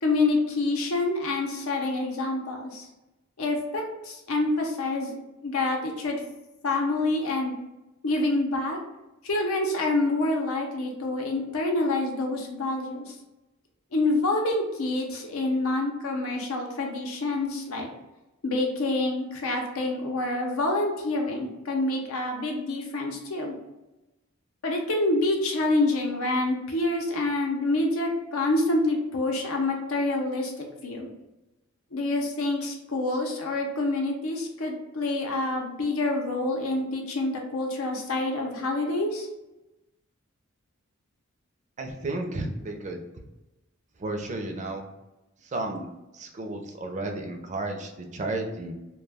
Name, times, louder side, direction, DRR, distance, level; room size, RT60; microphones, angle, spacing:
voice 1, 0.0-2.9 3.4-5.1 5.4-6.2 6.6-7.6 8.0-8.8 9.2-13.1 13.9-17.9 18.4-23.5 24.6-30.5 30.8-31.1 31.9-39.3, left 2 dB, 85° left, 1 dB, 0.6 m, -27 dB
voice 2, 41.8-43.0 44.0-44.9 45.5-45.9 46.1-48.7, right 2 dB, 35° right, 3 dB, 0.4 m, -32 dB
2.2 x 2.2 x 3.3 m, 1.0 s
head